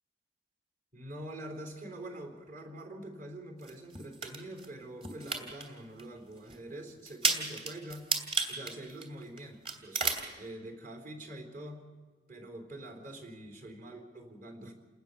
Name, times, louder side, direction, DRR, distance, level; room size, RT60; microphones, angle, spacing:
voice 1, 0.9-8.1 8.5-10.1 10.4-11.8 12.3-14.7, right 1 dB, 50° right, 5 dB, 4.0 m, -45 dB
sound 1, 3.6-4.7 5.0-5.6 6.0-6.1 6.5-6.6 7.1-9.4 9.6-10.3, right 4 dB, 35° right, 3.0 m, -32 dB
28.5 x 19.0 x 6.9 m, 1.4 s
head